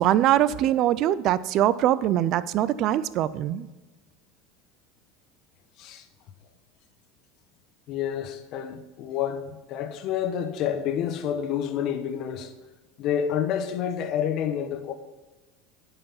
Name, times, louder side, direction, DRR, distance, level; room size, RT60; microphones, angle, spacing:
voice 1, 0.0-3.7, right 12 dB, 55° right, 0.4 m, -22 dB
voice 2, 7.9-12.5 13.0-14.9, left 9 dB, 55° left, 1.2 m, -29 dB
9.5 x 5.5 x 5.8 m
supercardioid pair, 110°, 0 cm